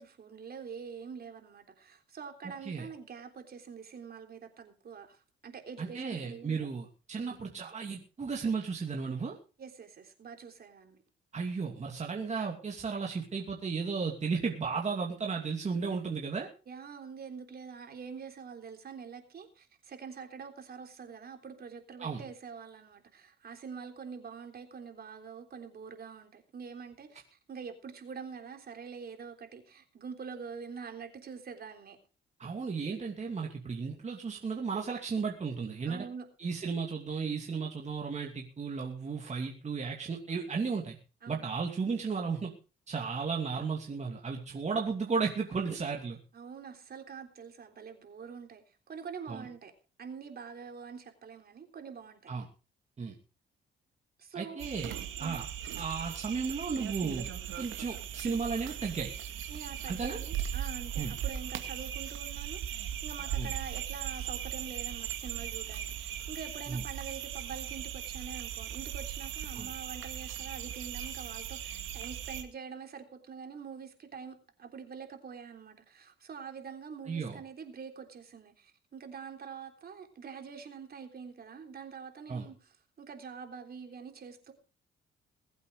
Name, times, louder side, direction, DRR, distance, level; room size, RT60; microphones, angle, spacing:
voice 1, 0.0-6.7 7.2-7.5 9.6-11.0 16.7-32.0 35.8-36.3 41.2-41.5 46.3-49.7 50.0-52.3 54.2-54.6 55.2-55.4 59.5-84.5, right 6 dB, 50° right, 3.5 m, -45 dB
voice 2, 5.8-9.3 11.3-16.5 22.0-22.2 32.4-36.0 36.4-41.0 41.3-42.5 42.9-46.2 49.3-49.5 52.3-52.5 53.0-53.2 54.3-54.9 55.2-55.4 55.8-57.3 57.6-59.1 59.9-60.2 61.0-61.1 63.4-63.5 66.7-66.8 69.5-69.7 77.1-77.4 82.3-82.5, right 5 dB, 35° right, 2.6 m, -34 dB
sound 1, 54.6-72.4, right 10 dB, 85° right, 2.2 m, -38 dB
21.5 x 8.2 x 5.0 m
cardioid pair, 90°, 20 cm